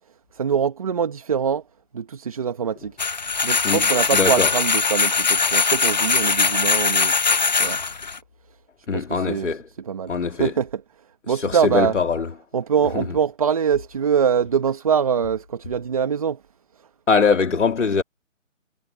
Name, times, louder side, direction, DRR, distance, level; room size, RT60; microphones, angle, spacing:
voice 1, 0.3-1.6 1.9-2.9 3.4-7.1 7.6-7.8 8.9-9.5 9.8-10.8 11.3-11.9 12.5-16.4, right 7 dB, 25° right, 1.5 m, -23 dB
sound 1, 3.0-8.2, left 4 dB, 35° left, 0.8 m, -21 dB
voice 2, 3.6-4.5 8.9-9.6 10.1-10.5 11.3-12.3 12.9-13.0 17.1-18.0, left 5 dB, 65° left, 2.4 m, -22 dB
hypercardioid pair, 170°, 39 cm